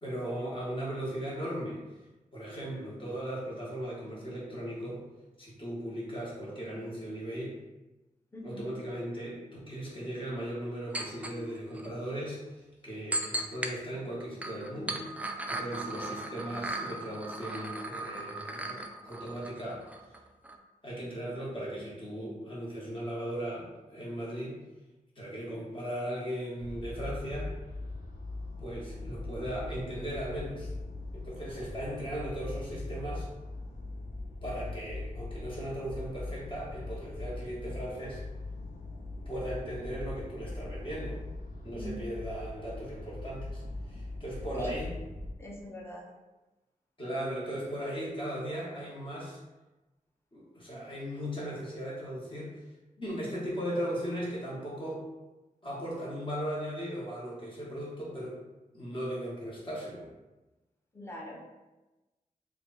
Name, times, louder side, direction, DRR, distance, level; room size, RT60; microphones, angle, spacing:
voice 1, 0.0-1.8 2.3-5.0 5.4-7.6 8.4-15.1 15.5-19.8 20.8-24.6 25.1-27.5 28.6-30.7 31.1-33.3 34.4-38.2 39.2-41.2 41.6-44.9 47.0-49.4 50.3-52.6 53.0-55.0 55.6-58.4 58.7-60.1, right 1 dB, 35° left, -5 dB, 1.3 m, -37 dB
voice 2, 8.3-8.7 41.7-42.0 44.5-44.7 45.4-46.1 60.9-61.4, equal, 15° left, -2 dB, 0.8 m, -42 dB
sound 1, 10.9-11.3 11.7-11.9 13.1-13.7 14.2-20.2 20.4-20.6, right 2 dB, 10° right, 0.3 m, -37 dB
sound 2, 26.6-45.3, left 2 dB, 75° left, 0.6 m, -40 dB
3.3 x 2.3 x 4.0 m, 1.1 s
wide cardioid pair, 105°, 15 cm